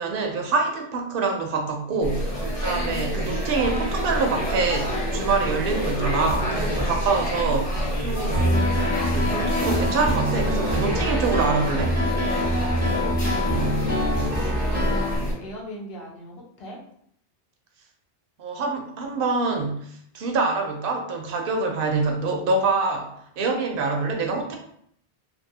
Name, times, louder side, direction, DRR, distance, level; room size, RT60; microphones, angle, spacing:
voice 1, 0.0-8.5 9.1-12.0 18.4-24.6, right 4 dB, 65° right, 3 dB, 0.7 m, -25 dB
sound 1, 2.0-15.3, equal, 35° left, 0.7 m, -27 dB
Piano, 8.3-15.2, left 1 dB, 10° right, 0.7 m, -25 dB
voice 2, 12.8-16.8, equal, 70° left, -2 dB, 1.0 m, -39 dB
2.6 x 2.6 x 2.7 m, 0.67 s
omnidirectional pair, 1.1 m